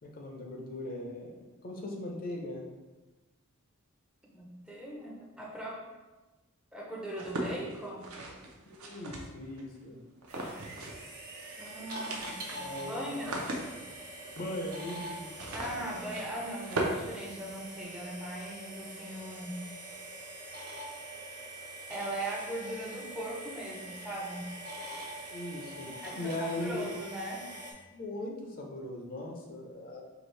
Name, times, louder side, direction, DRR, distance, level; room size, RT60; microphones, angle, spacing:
voice 1, 0.0-2.6 8.7-10.0 12.2-13.4 14.4-15.3 25.3-26.8 27.9-30.0, left 1 dB, 40° left, 0 dB, 0.5 m, -39 dB
voice 2, 4.3-5.8 6.7-8.1 11.6-13.4 15.5-19.6 21.9-24.5 26.0-27.4, right 1 dB, 5° right, -3 dB, 0.5 m, -39 dB
sound 1, 7.1-9.6 10.2-11.1 11.4-11.5 11.8-17.9, right 2 dB, 70° right, 0.6 m, -39 dB
sound 2, 10.3-27.7, right 1 dB, 45° right, 0.8 m, -44 dB
4.5 x 2.4 x 3.2 m, 1.2 s
head